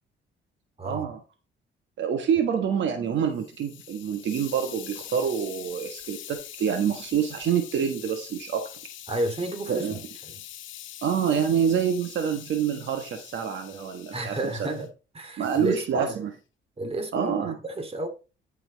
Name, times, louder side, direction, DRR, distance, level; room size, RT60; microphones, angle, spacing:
voice 1, 0.8-1.2 2.0-8.6 9.7-10.0 11.0-14.3 15.4-16.3 17.1-17.6, right 7 dB, 70° right, 1.4 m, -26 dB
Hiss, 3.1-14.9 15.4-15.8, left 11 dB, 75° left, 1.1 m, -44 dB
voice 2, 9.1-10.4 14.1-14.9 15.1-16.1 16.8-17.4 17.6-18.1, right 2 dB, 30° right, 2.7 m, -31 dB
11.0 x 5.8 x 4.0 m
cardioid pair, 90°, 20 cm